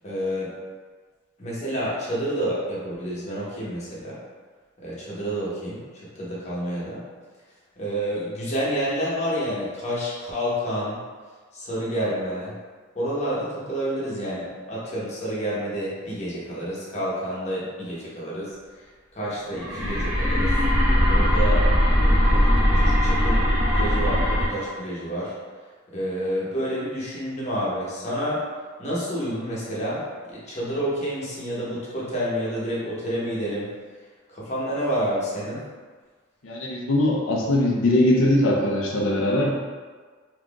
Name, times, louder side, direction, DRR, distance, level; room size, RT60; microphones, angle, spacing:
voice 1, 0.0-0.5 1.4-4.2 4.8-5.8 6.1-7.0 7.8-11.0 11.5-12.5 12.9-18.5 19.1-20.5 21.1-21.6 22.0-25.3 25.9-28.4 28.8-33.7 34.3-35.6, equal, 35° left, -7 dB, 1.0 m, -29 dB
sound 1, 19.5-24.5, equal, 5° right, 0.7 m, -20 dB
voice 2, 36.4-39.5, left 1 dB, 70° left, -2 dB, 0.5 m, -21 dB
3.6 x 2.8 x 2.4 m, 1.5 s
head